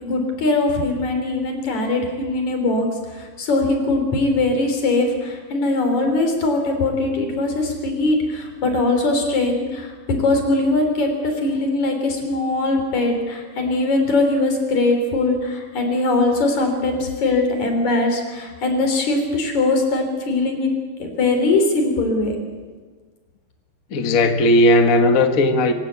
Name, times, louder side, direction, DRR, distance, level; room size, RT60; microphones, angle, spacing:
voice 1, 0.0-2.9 3.1-9.9 10.2-22.3, left 2 dB, 50° left, 4 dB, 4.8 m, -21 dB
voice 2, 23.9-25.7, left 1 dB, 85° left, 6 dB, 0.7 m, -16 dB
25.5 x 16.0 x 8.3 m, 1.5 s
omnidirectional pair, 4.1 m